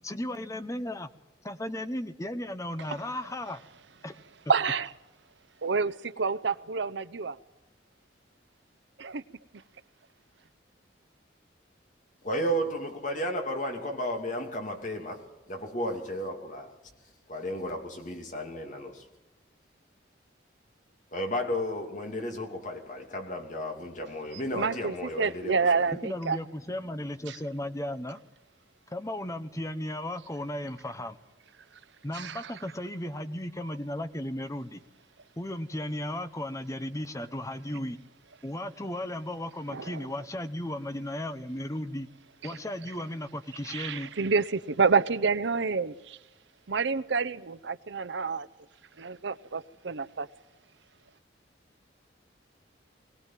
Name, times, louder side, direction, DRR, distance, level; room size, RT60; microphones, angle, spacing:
voice 1, 0.0-1.1 1.4-3.6 4.0-4.1 26.0-28.2 28.9-31.2 32.0-34.8 35.4-38.0 38.4-42.1 42.4-44.1, left 1 dB, 15° left, 1.0 m, -35 dB
voice 2, 4.5-4.9 5.6-7.3 9.0-9.2 24.5-26.4 27.3-27.4 32.1-32.4 39.7-39.9 43.7-46.2 46.7-48.5 49.0-50.3, right 5 dB, 70° right, 0.7 m, -28 dB
voice 3, 12.2-16.8 17.3-19.1 21.1-25.6, equal, 40° left, 2.7 m, -33 dB
21.0 x 18.5 x 7.4 m
head